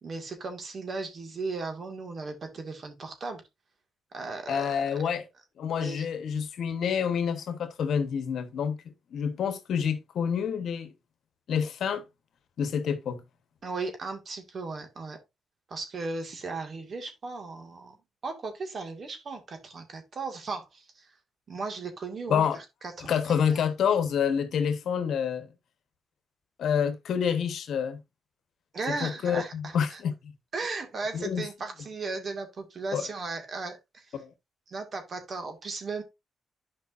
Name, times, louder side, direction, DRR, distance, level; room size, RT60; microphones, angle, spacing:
voice 1, 0.0-3.4 4.1-4.8 5.8-6.1 13.6-15.2 15.7-18.0 18.2-21.1 21.5-23.2 28.7-30.0 30.5-34.2 34.7-36.0, right 3 dB, 50° right, 2.1 m, -36 dB
voice 2, 4.5-5.3 5.6-8.8 9.1-10.9 11.5-12.0 12.6-13.2 22.3-22.6 23.0-25.5 26.6-28.0 28.9-30.3 31.1-31.4 32.9-33.0 34.1-34.3, left 7 dB, 75° left, 1.2 m, -28 dB
11.5 x 5.2 x 2.6 m
cardioid pair, 100°, 0 cm